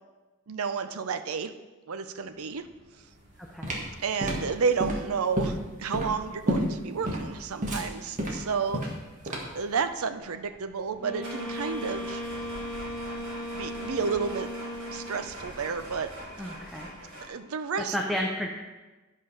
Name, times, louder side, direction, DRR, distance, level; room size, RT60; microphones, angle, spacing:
voice 1, 0.5-1.5 1.9-2.6 4.0-8.8 9.5-12.2 13.5-14.5 14.9-16.1 16.4-16.5 17.3-18.0, right 5 dB, 80° right, 9 dB, 0.6 m, -31 dB
sound 1, 2.3-17.3, equal, 60° right, 3.4 m, -46 dB
sound 2, 3.2-9.7, equal, 35° right, 1.6 m, -31 dB
voice 2, 3.4-3.7 16.4-16.9 17.8-18.5, equal, ahead, 0 dB, 0.7 m, -32 dB
Wind instrument woodwind instrument, 11.0-15.3, equal, 35° left, 2.5 m, -37 dB
11.0 x 5.1 x 5.5 m, 1.2 s
head